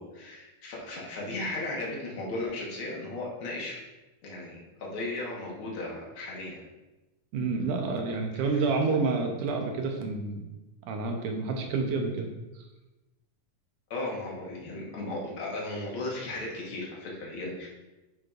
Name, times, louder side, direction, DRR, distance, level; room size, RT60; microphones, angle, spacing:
voice 1, 0.0-3.8 4.2-6.6 8.5-8.6 13.9-17.7, left 2 dB, 60° left, -3 dB, 1.4 m, -36 dB
voice 2, 7.3-10.4 10.9-12.3, right 4 dB, 75° right, 3 dB, 2.1 m, -29 dB
9.4 x 5.8 x 2.5 m, 1.1 s
omnidirectional pair, 4.1 m